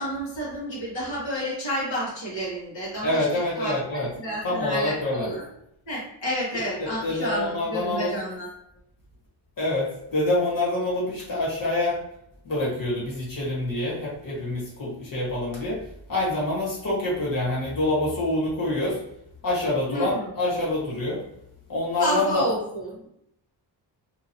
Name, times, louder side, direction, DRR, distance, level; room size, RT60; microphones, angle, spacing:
voice 1, 0.0-5.4 5.9-8.5 19.9-20.3 22.0-23.1, equal, 85° left, -6 dB, 1.3 m, -30 dB
voice 2, 3.0-4.1 4.4-5.3 6.5-8.2 9.6-12.0 12.4-15.8 16.1-19.0 19.4-21.2 21.7-22.5, left 2 dB, 50° left, -7 dB, 1.4 m, -26 dB
2.8 x 2.7 x 2.8 m, 0.78 s
wide cardioid pair, 120°, 44 cm